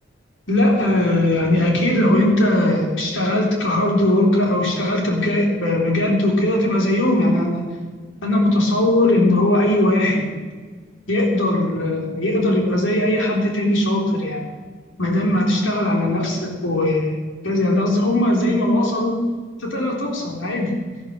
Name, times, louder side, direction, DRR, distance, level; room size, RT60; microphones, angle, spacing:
voice 1, 0.5-7.7 8.2-10.2 11.1-14.5 15.0-17.2 17.4-19.2 19.6-20.7, left 1 dB, 80° left, -1 dB, 3.7 m, -19 dB
12.5 x 12.0 x 6.5 m, 1.5 s
head